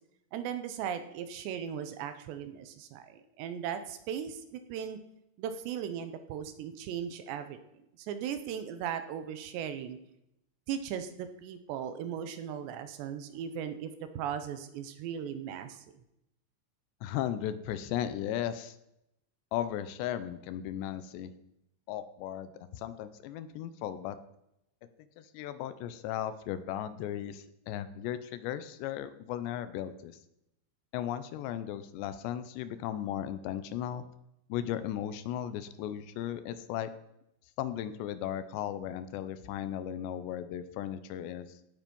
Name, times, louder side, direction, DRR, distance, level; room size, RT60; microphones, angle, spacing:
voice 1, 0.3-5.0 5.4-7.6 8.0-10.0 10.7-15.8, right 8 dB, 75° right, 10 dB, 3.1 m, -37 dB
voice 2, 17.0-18.8 19.5-21.3 21.9-24.2 25.2-30.2 30.9-34.0 34.5-36.9 37.6-41.6, left 11 dB, 80° left, 13 dB, 2.9 m, -36 dB
16.5 x 8.0 x 5.4 m, 0.82 s
omnidirectional pair, 5.2 m